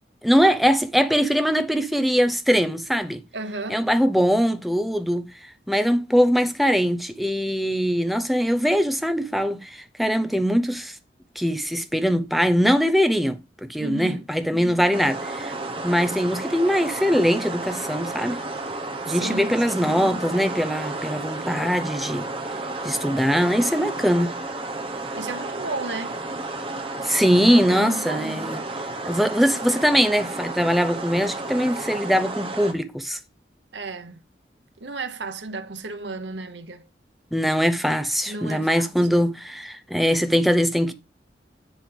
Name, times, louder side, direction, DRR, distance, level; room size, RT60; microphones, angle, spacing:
voice 1, 0.2-3.2 3.7-5.3 5.7-11.0 11.4-15.5 15.8-18.4 19.1-22.3 22.8-24.4 27.0-28.6 29.0-33.2 37.3-40.9, equal, ahead, 0.7 m, -22 dB
voice 2, 3.3-3.8 13.8-14.2 19.1-19.8 25.1-26.2 27.7-28.4 33.7-34.2 34.8-36.9 38.3-38.9, right 3 dB, 80° right, 1.1 m, -33 dB
sound 1, 14.9-32.7, right 2 dB, 30° right, 1.0 m, -32 dB
10.5 x 3.5 x 5.3 m
head